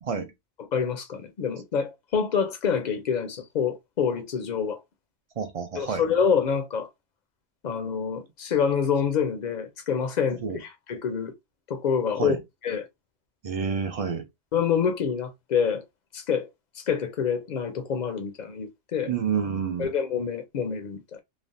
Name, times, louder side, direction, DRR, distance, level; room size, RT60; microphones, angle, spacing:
voice 1, 0.0-0.3 5.4-6.0 10.4-10.6 12.2-12.4 13.4-14.3 19.1-19.9, right 6 dB, 50° right, 0.4 m, -29 dB
voice 2, 0.7-4.8 5.8-6.9 7.6-11.3 11.7-12.4 12.6-12.9 14.5-15.8 16.1-16.5 16.8-19.1 19.8-21.2, left 7 dB, 50° left, 0.5 m, -27 dB
3.2 x 2.1 x 2.6 m
omnidirectional pair, 1.2 m